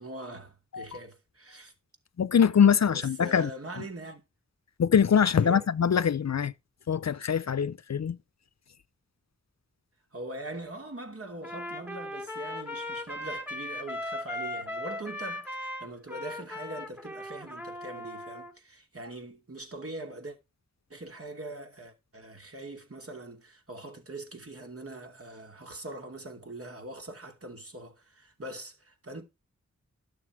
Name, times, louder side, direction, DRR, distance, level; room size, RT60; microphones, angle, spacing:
voice 1, 0.0-1.7 2.9-4.2 5.4-5.7 10.1-20.4 20.9-29.2, right 2 dB, 50° right, 2.7 m, -42 dB
voice 2, 2.2-3.5 3.8-3.9 4.8-6.5 6.9-8.2, left 7 dB, 60° left, 0.5 m, -23 dB
Trumpet, 11.4-18.5, left 1 dB, 5° right, 1.9 m, -38 dB
12.0 x 6.6 x 4.7 m
cardioid pair, 45°, 30 cm